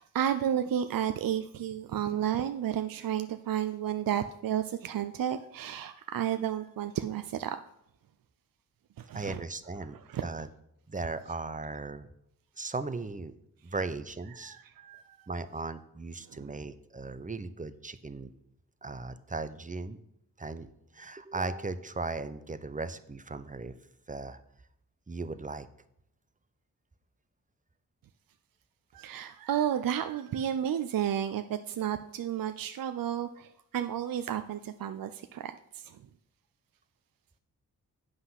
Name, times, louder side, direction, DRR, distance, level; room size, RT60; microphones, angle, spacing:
voice 1, 0.0-7.6 9.0-9.4 10.1-10.3 14.3-15.3 16.3-16.5 28.9-36.0, right 10 dB, 65° right, 9 dB, 0.5 m, -32 dB
voice 2, 9.1-10.5 10.9-12.1 12.6-13.3 13.6-14.6 15.3-18.3 18.8-20.0 20.4-23.7 24.1-24.4 25.1-25.7, right 3 dB, 20° right, 12 dB, 0.7 m, -37 dB
8.0 x 5.6 x 5.8 m, 0.77 s
cardioid pair, 50°, 37 cm